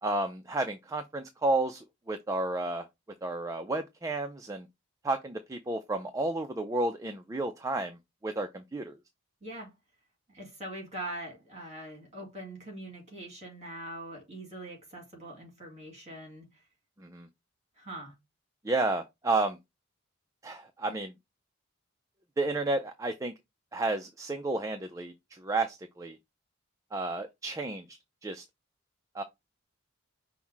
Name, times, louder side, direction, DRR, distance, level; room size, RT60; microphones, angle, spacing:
voice 1, 0.0-2.9 3.2-4.7 5.0-8.0 8.2-9.0 17.0-17.3 18.6-19.6 20.4-21.1 22.4-23.3 23.7-26.2 26.9-28.4 29.1-29.2, right 2 dB, 15° right, 0.3 m, -32 dB
voice 2, 10.3-16.5 17.8-18.1, right 1 dB, 30° right, 2.3 m, -42 dB
5.5 x 2.1 x 4.5 m
head